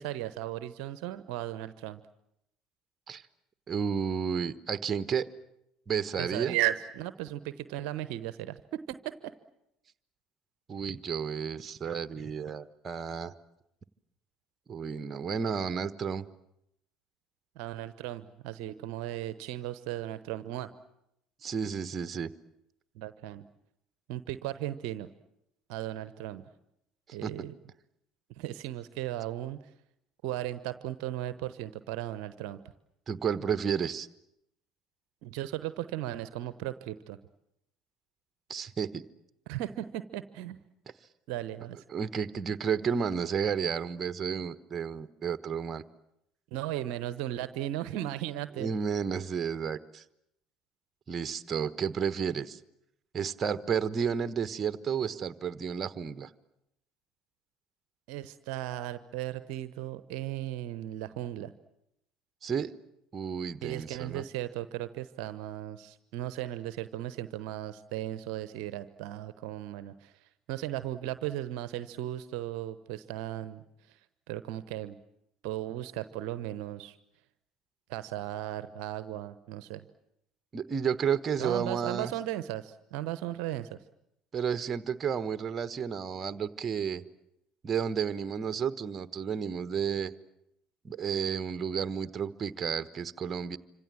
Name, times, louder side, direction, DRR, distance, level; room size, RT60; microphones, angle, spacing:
voice 1, 0.0-2.0 6.1-9.3 17.5-20.7 22.9-23.4 24.1-25.1 25.7-26.4 27.1-27.5 28.4-29.6 30.2-32.6 35.2-37.2 39.5-40.6 41.3-41.8 46.5-48.7 58.1-61.5 63.6-74.0 74.3-75.0 75.4-77.0 77.9-79.9 81.4-83.8, right 13 dB, 60° right, 13 dB, 0.9 m, -36 dB
voice 2, 3.7-5.3 5.9-6.6 10.7-13.3 14.7-16.3 21.4-22.3 27.2-27.5 33.1-34.1 38.5-39.0 41.9-45.8 48.6-50.0 51.1-52.6 53.1-56.3 62.4-62.7 63.1-64.2 80.5-82.1 84.3-87.0 87.6-90.1 90.8-93.6, right 7 dB, 35° right, 13 dB, 1.2 m, -32 dB
26.5 x 26.0 x 7.5 m, 0.81 s
figure-of-eight pair, 60°, 0 cm